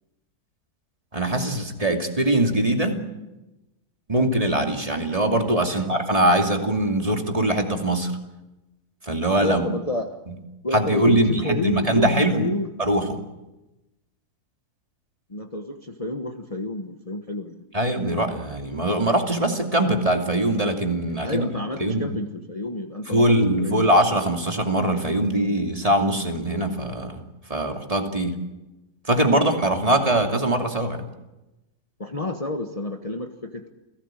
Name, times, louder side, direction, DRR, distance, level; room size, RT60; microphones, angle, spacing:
voice 1, 1.1-3.1 4.1-8.1 9.1-9.6 10.7-12.5 12.8-13.2 17.7-21.4 21.8-22.1 23.1-27.2 27.5-28.4 29.1-31.0, right 1 dB, 20° right, 3 dB, 2.7 m, -22 dB
voice 2, 9.4-10.2 10.6-12.7 15.3-17.7 21.2-23.3 23.6-23.9 32.0-33.7, left 2 dB, 25° left, 4 dB, 1.3 m, -29 dB
29.0 x 17.5 x 9.0 m, 1.0 s
omnidirectional pair, 1.7 m